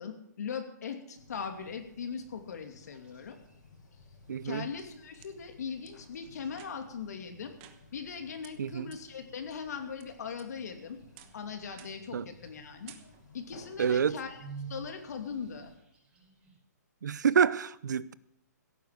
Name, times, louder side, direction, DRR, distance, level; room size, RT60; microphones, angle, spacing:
voice 1, 0.0-3.4 4.4-7.6 7.9-11.0 11.3-12.9 13.3-14.4 14.7-15.7, left 6 dB, 65° left, 2.7 m, -40 dB
sound 1, 1.1-15.8, left 3 dB, 90° left, 5.3 m, -57 dB
sound 2, 2.9-16.6, right 5 dB, 10° right, 5.8 m, -54 dB
voice 2, 4.3-4.7 8.6-8.9 12.1-12.3 13.8-14.2 17.0-18.1, right 7 dB, 75° right, 0.7 m, -27 dB
sound 3, 4.4-5.3 5.8-5.9 6.5-7.0 7.6-8.1 8.4-8.5 8.9-9.0 9.5-10.0 10.4-10.8 11.2-11.4 11.8-12.1 12.4-12.6 12.9-13.4, right 12 dB, 30° right, 1.2 m, -55 dB
16.5 x 9.3 x 6.6 m
hypercardioid pair, 155°, 10 cm